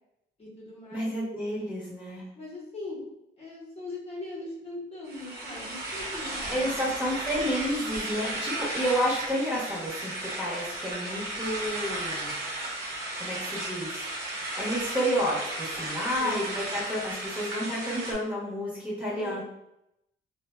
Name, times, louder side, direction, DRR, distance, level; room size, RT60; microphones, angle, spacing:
voice 1, 0.4-1.1 2.4-3.0 3.4-7.0 16.2-16.5 19.0-19.4, left 2 dB, 30° left, -6 dB, 0.9 m, -40 dB
voice 2, 0.9-2.3 6.5-12.3 13.2-14.0 14.5-19.4, equal, 5° right, -6 dB, 1.1 m, -30 dB
sound 1, 5.1-18.1, right 1 dB, 50° right, 0.9 m, -34 dB
2.4 x 2.2 x 2.4 m, 0.84 s
cardioid pair, 90°, 20 cm